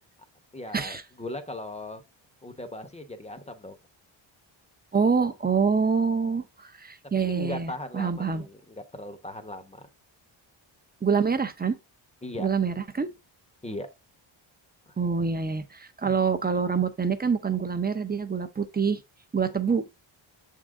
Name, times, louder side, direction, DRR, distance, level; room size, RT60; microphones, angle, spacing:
voice 1, 0.5-2.0 2.4-3.8 7.2-9.9 12.2-12.5 13.6-13.9 15.2-15.3 16.0-16.2, left 1 dB, 15° left, 0.8 m, -38 dB
voice 2, 4.9-8.4 11.0-11.8 12.4-13.1 15.0-19.0 19.3-20.1, right 5 dB, 20° right, 0.6 m, -26 dB
7.2 x 3.8 x 3.6 m
wide cardioid pair, 145°, 49 cm